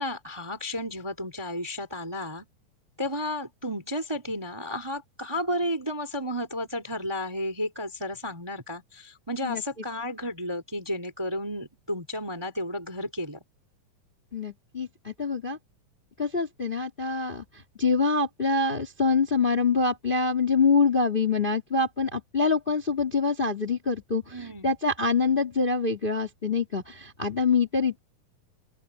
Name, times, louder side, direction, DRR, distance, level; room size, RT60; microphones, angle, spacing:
voice 1, 0.0-2.5 3.0-13.4 24.3-24.7, left 1 dB, 10° right, 2.1 m, -32 dB
voice 2, 14.3-15.6 16.2-28.1, left 4 dB, 15° left, 2.1 m, -25 dB
open air
omnidirectional pair, 4.0 m